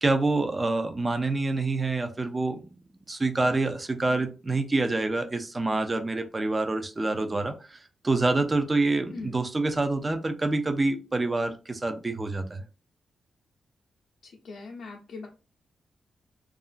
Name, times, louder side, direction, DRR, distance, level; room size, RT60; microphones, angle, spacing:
voice 1, 0.0-2.7 3.1-12.6, right 2 dB, 20° right, 7 dB, 0.4 m, -27 dB
voice 2, 14.2-15.3, left 3 dB, 70° left, -1 dB, 0.5 m, -40 dB
2.8 x 2.4 x 2.4 m, 0.32 s
wide cardioid pair, 150°, 0 cm